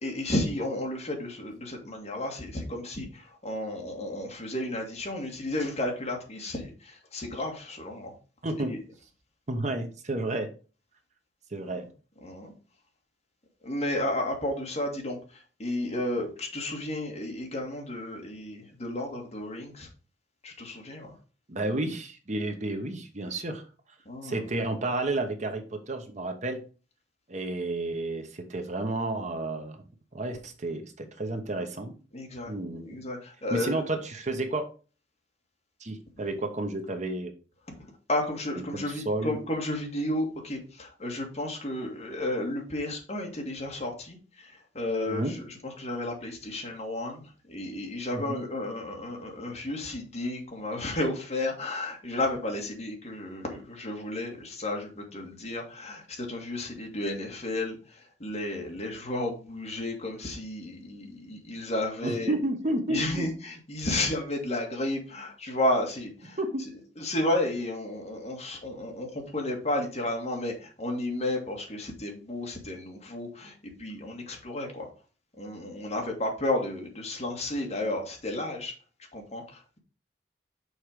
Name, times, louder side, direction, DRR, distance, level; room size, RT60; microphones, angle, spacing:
voice 1, 0.0-8.1 8.6-8.8 12.2-12.5 13.6-19.9 20.4-21.1 24.1-24.5 32.1-32.5 32.9-33.8 38.1-47.2 47.5-62.4 62.9-66.4 67.0-74.9 75.4-78.7 79.1-79.8, left 1 dB, 40° left, 1 dB, 2.1 m, -32 dB
voice 2, 8.4-8.7 9.5-10.5 11.5-11.9 21.5-23.6 24.2-26.6 27.3-29.8 30.1-31.9 32.5-32.9 33.5-34.7 35.8-37.3 38.7-39.4 45.1-45.3 48.3-48.4 62.0-63.3 66.4-66.6, right 2 dB, 40° right, 6 dB, 1.1 m, -31 dB
6.5 x 4.7 x 5.0 m, 0.35 s
head